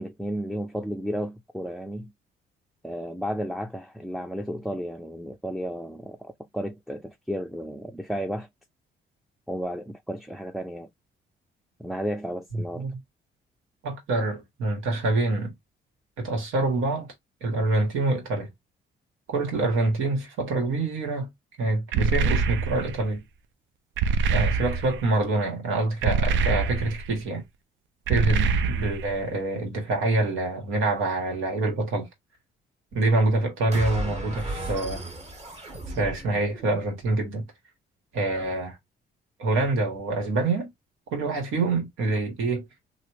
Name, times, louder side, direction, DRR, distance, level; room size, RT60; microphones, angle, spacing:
voice 1, 0.0-2.1 2.8-8.5 9.5-10.9 11.8-12.8, equal, ahead, 0.4 m, -33 dB
voice 2, 12.5-12.9 13.8-15.5 16.2-17.1 17.4-18.5 19.3-21.3 21.6-23.2 24.3-27.4 28.1-32.1 32.9-35.0 35.9-37.5 38.1-38.8 39.4-40.7 41.1-42.6, right 2 dB, 90° right, 1.6 m, -26 dB
sound 1, 21.9-23.0 24.0-25.1 26.0-27.1 28.1-29.2, right 4 dB, 70° right, 0.5 m, -25 dB
sound 2, 33.7-37.1, right 1 dB, 35° right, 1.6 m, -35 dB
3.2 x 2.5 x 2.9 m
cardioid pair, 90°, 20 cm